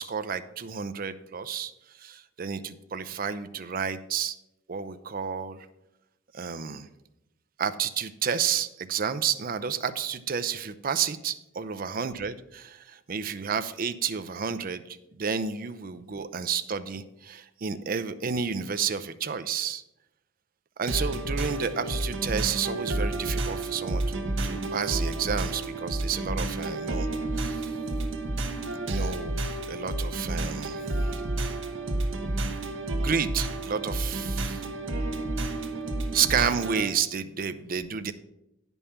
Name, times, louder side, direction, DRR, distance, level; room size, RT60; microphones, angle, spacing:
voice 1, 0.0-4.4 4.7-5.7 6.3-6.9 7.6-19.8 20.8-24.0 24.4-27.1 27.4-27.7 28.9-31.2 33.0-34.6 36.1-38.1, right 7 dB, 45° right, 12 dB, 0.5 m, -31 dB
sound 1, 20.9-36.9, right 2 dB, 70° right, 1.1 m, -30 dB
9.7 x 5.4 x 5.8 m, 0.88 s
head